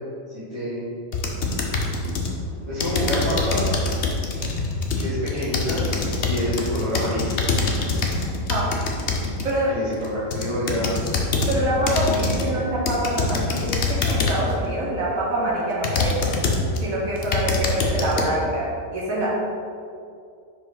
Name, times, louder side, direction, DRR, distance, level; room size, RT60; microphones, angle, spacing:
voice 1, 0.3-0.9 2.7-3.7 5.0-5.8 6.2-7.3 9.7-11.0 12.0-12.6, equal, 20° right, -11 dB, 1.4 m, -27 dB
sound 1, 1.1-2.4 2.8-9.5 10.0-11.6 11.9-12.5 12.9-14.5 15.1-15.2 15.8-16.8 17.2-18.2, left 3 dB, 60° left, 0.9 m, -24 dB
voice 2, 11.5-16.3 16.8-19.3, right 1 dB, 90° right, -6 dB, 1.6 m, -25 dB
5.5 x 4.8 x 3.9 m, 2.4 s
omnidirectional pair, 1.4 m